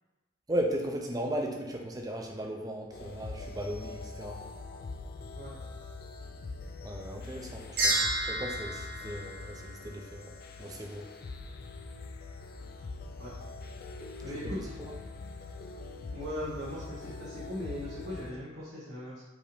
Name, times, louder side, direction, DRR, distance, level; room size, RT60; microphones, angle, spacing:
voice 1, 0.5-4.4 6.8-10.3 10.6-11.0 14.3-14.9, right 1 dB, 20° right, 2 dB, 0.4 m, -36 dB
sound 1, 2.9-18.3, left 3 dB, 50° left, 0.3 m, -43 dB
sound 2, 7.8-10.2, right 1 dB, 45° right, 0.9 m, -31 dB
voice 2, 14.2-14.7 16.1-19.2, equal, 80° right, -9 dB, 1.1 m, -39 dB
5.0 x 2.6 x 3.3 m, 1.1 s
head